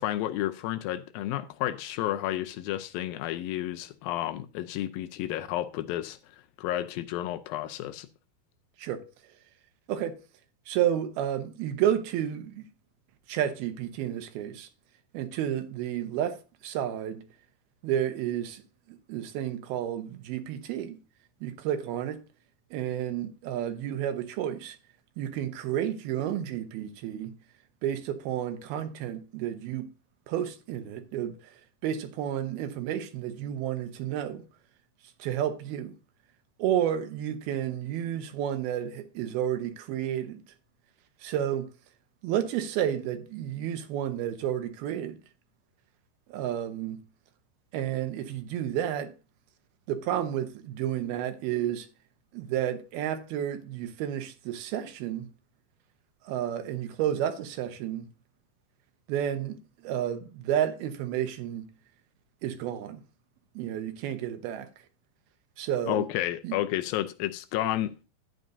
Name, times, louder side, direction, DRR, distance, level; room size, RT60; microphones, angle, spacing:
voice 1, 0.0-8.1 65.9-68.0, left 13 dB, 80° left, 2.3 m, -31 dB
voice 2, 10.7-12.7 13.3-14.7 15.1-17.2 17.8-18.6 18.9-21.0 21.4-22.2 22.7-24.8 25.2-27.3 27.8-29.9 30.3-34.4 35.2-35.9 36.6-40.4 41.2-41.7 42.2-45.2 46.3-47.0 47.7-49.1 49.9-51.9 52.3-55.3 56.2-58.1 59.1-61.7 62.4-63.0 63.6-64.7 65.6-66.1 66.4-66.6, right 10 dB, 80° right, 2.9 m, -31 dB
12.0 x 9.3 x 2.6 m
omnidirectional pair, 4.4 m